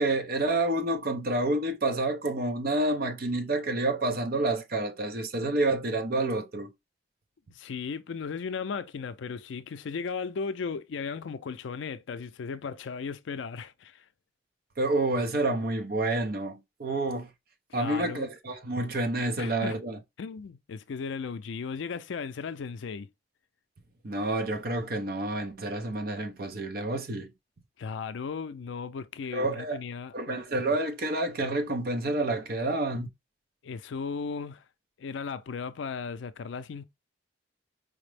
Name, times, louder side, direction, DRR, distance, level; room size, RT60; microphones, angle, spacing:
voice 1, 0.0-6.7 14.8-17.3 17.7-20.0 24.0-27.3 29.3-29.8 30.1-33.1, right 2 dB, 50° right, 0.7 m, -29 dB
voice 2, 7.5-14.0 17.7-18.3 19.4-19.8 20.2-23.1 27.8-30.4 33.6-34.6 35.0-36.8, left 5 dB, 75° left, 0.4 m, -36 dB
4.9 x 2.0 x 3.2 m
head